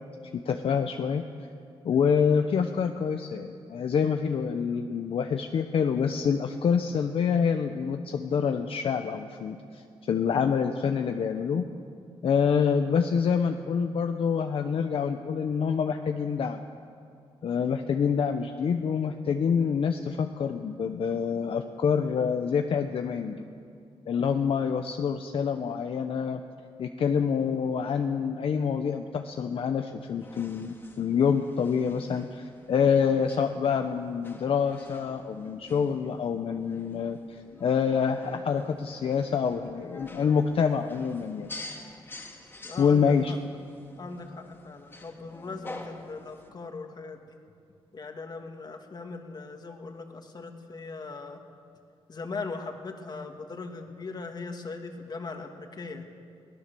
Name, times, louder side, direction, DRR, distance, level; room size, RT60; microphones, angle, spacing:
voice 1, 0.4-1.2 1.8-11.6 12.2-16.6 17.4-23.4 24.1-26.4 26.8-41.5 42.8-43.3, left 6 dB, 65° left, 5 dB, 0.9 m, -26 dB
sound 1, 30.0-46.5, left 2 dB, 20° left, 2.2 m, -48 dB
voice 2, 42.6-43.4 44.0-47.4 47.9-51.4 52.1-56.1, left 4 dB, 40° left, 4 dB, 2.1 m, -39 dB
23.0 x 17.0 x 6.9 m, 2.3 s
cardioid pair, 110°, 10 cm